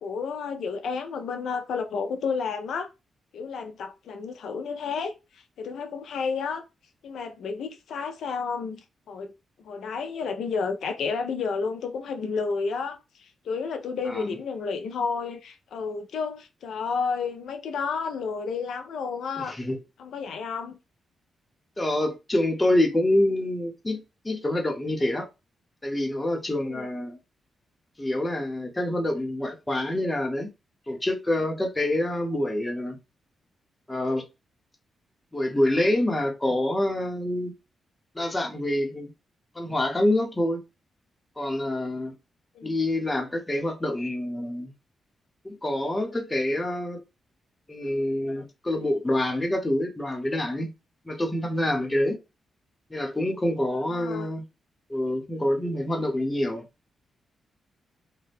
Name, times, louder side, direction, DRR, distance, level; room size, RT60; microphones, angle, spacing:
voice 1, 0.0-2.9 3.3-5.1 5.6-6.6 7.0-9.3 9.6-19.6 20.0-20.8 26.6-26.9 42.6-42.8 53.9-54.3, left 5 dB, 80° left, 0.4 m, -31 dB
voice 2, 14.1-14.4 19.4-19.8 21.8-25.3 25.8-27.2 28.0-30.5 30.9-33.0 33.9-34.2 35.3-37.5 38.1-39.1 39.5-40.6 41.4-42.1 42.6-44.7 45.4-47.0 47.7-50.7 51.1-52.2 52.9-54.5 54.9-56.6, left 1 dB, 15° left, 0.8 m, -26 dB
2.6 x 2.2 x 3.4 m
cardioid pair, 80°, 0 cm